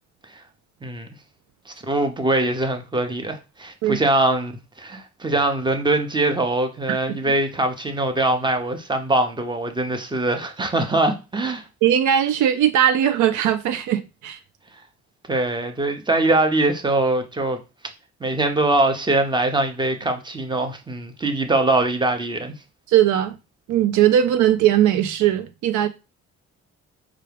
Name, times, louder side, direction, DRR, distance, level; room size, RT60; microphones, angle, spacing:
voice 1, 1.7-4.5 4.8-11.6 15.3-17.6 18.2-22.5, right 2 dB, 15° right, 0.7 m, -22 dB
voice 2, 11.8-14.4 22.9-23.3 23.7-25.9, right 10 dB, 80° right, 0.4 m, -19 dB
4.5 x 2.4 x 3.3 m
cardioid pair, 90°, 30 cm